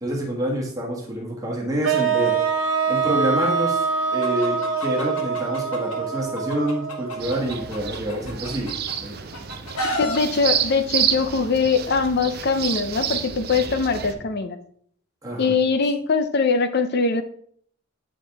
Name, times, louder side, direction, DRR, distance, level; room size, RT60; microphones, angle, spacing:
voice 1, 0.0-8.7 9.0-9.3 15.2-15.5, right 1 dB, 15° right, -3 dB, 1.3 m, -27 dB
sound 1, 1.8-7.9, right 5 dB, 70° right, 1.0 m, -25 dB
Chicken rooster, 4.2-6.0 6.3-8.9 9.3-10.2, left 1 dB, 85° left, 1.3 m, -31 dB
sound 2, 7.2-14.1, right 8 dB, 45° right, 0.6 m, -29 dB
voice 2, 10.0-14.6 15.4-17.2, left 4 dB, 45° left, 10 dB, 0.5 m, -22 dB
8.1 x 5.0 x 3.4 m, 0.62 s
head